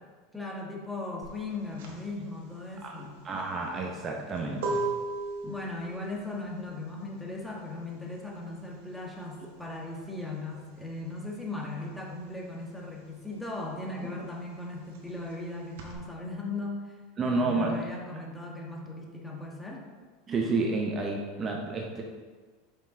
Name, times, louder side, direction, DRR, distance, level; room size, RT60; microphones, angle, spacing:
voice 1, 0.3-3.2 5.4-17.0 17.2-19.9, left 2 dB, 5° left, -2 dB, 1.4 m, -38 dB
sound 1, 1.2-11.5 11.7-15.9, right 3 dB, 70° right, 1.3 m, -38 dB
voice 2, 2.8-4.8 14.0-14.1 17.2-17.8 20.3-22.0, right 3 dB, 30° right, 0 dB, 0.9 m, -30 dB
5.3 x 5.3 x 3.8 m, 1.4 s
hypercardioid pair, 90°, 0 cm